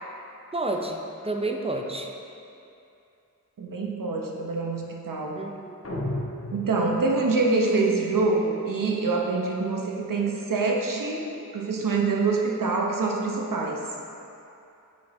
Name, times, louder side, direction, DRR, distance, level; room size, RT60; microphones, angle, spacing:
voice 1, 0.5-2.1 5.4-5.7, right 2 dB, 15° right, 2 dB, 0.5 m, -30 dB
voice 2, 3.6-5.4 6.5-11.3 11.5-13.8, right 3 dB, 70° right, -1 dB, 0.8 m, -25 dB
sound 1, 5.8-7.3, left 1 dB, 45° left, 1.1 m, -33 dB
8.4 x 4.4 x 3.2 m, 2.7 s
wide cardioid pair, 75°, 34 cm